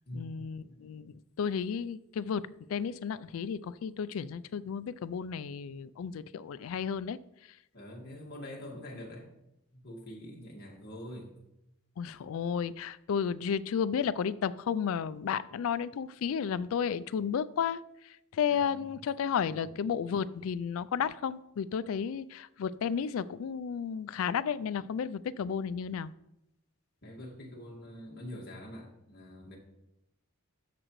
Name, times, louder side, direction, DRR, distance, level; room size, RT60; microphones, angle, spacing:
voice 1, 0.1-7.2 12.0-26.1, left 7 dB, 65° left, 16 dB, 0.3 m, -33 dB
voice 2, 7.7-9.3 9.7-11.3 18.5-19.0 19.4-19.7 27.0-29.6, left 1 dB, 45° left, -2 dB, 1.8 m, -45 dB
12.5 x 5.0 x 3.1 m, 0.85 s
head